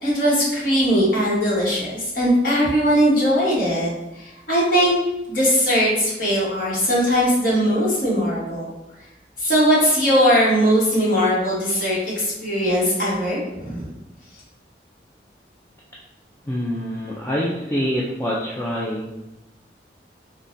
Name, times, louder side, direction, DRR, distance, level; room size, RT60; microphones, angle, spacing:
voice 1, 0.0-3.9 4.1-4.9 5.3-8.7 9.4-13.9, equal, 50° left, -7 dB, 1.2 m, -20 dB
voice 2, 16.4-19.1, equal, 15° left, -6 dB, 0.3 m, -25 dB
3.7 x 2.1 x 2.5 m, 0.95 s
head